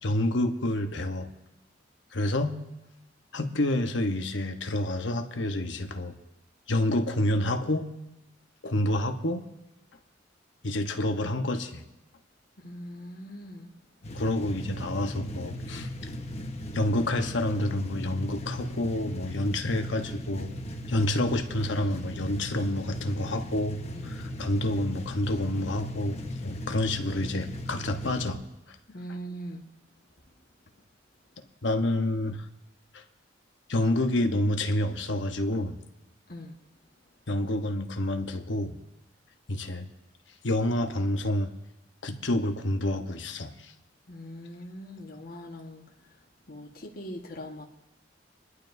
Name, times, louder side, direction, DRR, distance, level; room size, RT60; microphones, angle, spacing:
voice 1, 0.0-1.3 2.1-2.6 3.3-6.1 6.7-7.9 8.6-9.4 10.6-11.9 14.1-15.9 16.7-20.5 20.9-28.4 31.6-32.4 32.9-33.0 33.7-35.8 37.3-38.8 39.5-39.9 40.4-41.5 42.0-43.5, left 1 dB, 75° left, 6 dB, 1.0 m, -28 dB
voice 2, 12.6-13.7 23.9-24.2 28.9-29.6 36.3-36.5 44.1-45.8 46.5-47.6, equal, 50° left, 0 dB, 1.5 m, -41 dB
sound 1, 14.0-28.4, equal, 35° left, 1.1 m, -37 dB
26.5 x 11.5 x 2.7 m, 0.93 s
head